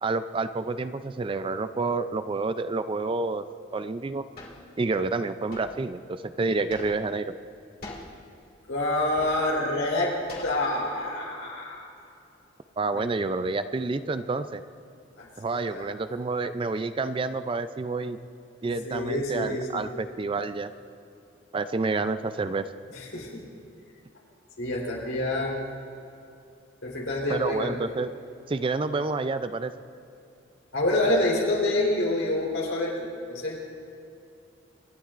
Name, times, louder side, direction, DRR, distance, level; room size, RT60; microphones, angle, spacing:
voice 1, 0.0-3.4 3.7-4.2 4.8-7.3 12.8-14.6 15.4-18.2 18.6-20.7 21.5-22.7 27.3-28.1 28.5-29.7, right 3 dB, 25° right, 11 dB, 0.3 m, -29 dB
sound 1, 4.4-4.6 5.5-5.8 6.7-7.2 7.8-8.1 9.0-9.6 10.3-10.9, left 2 dB, 50° left, 2.5 m, -42 dB
voice 2, 8.7-10.1 10.4-11.8 12.9-13.1 15.2-15.9 18.6-19.8 22.9-23.3 24.6-25.6 26.8-27.8 30.7-33.6, left 1 dB, 85° left, -3 dB, 3.8 m, -27 dB
26.5 x 12.0 x 2.5 m, 2.7 s
head